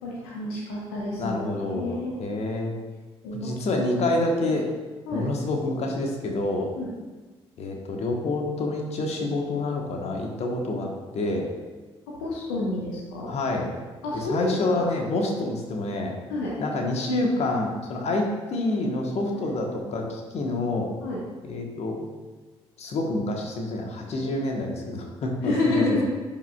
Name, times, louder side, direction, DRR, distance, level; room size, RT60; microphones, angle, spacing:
voice 1, 0.0-2.2 3.2-3.5 5.1-5.3 6.7-6.9 10.7-10.8 12.1-13.3 14.0-14.9 16.3-16.5 19.3-19.5 21.0-21.2 24.2-24.3 25.4-26.0, left 2 dB, 70° left, -4 dB, 1.0 m, -29 dB
voice 2, 1.2-2.7 3.3-4.6 5.1-6.7 7.6-11.5 13.3-13.7 14.1-16.1 16.6-20.9 21.4-22.1 22.8-26.0, left 2 dB, 50° left, 1 dB, 1.3 m, -27 dB
10.5 x 5.4 x 2.4 m, 1.3 s
figure-of-eight pair, 45°, 14 cm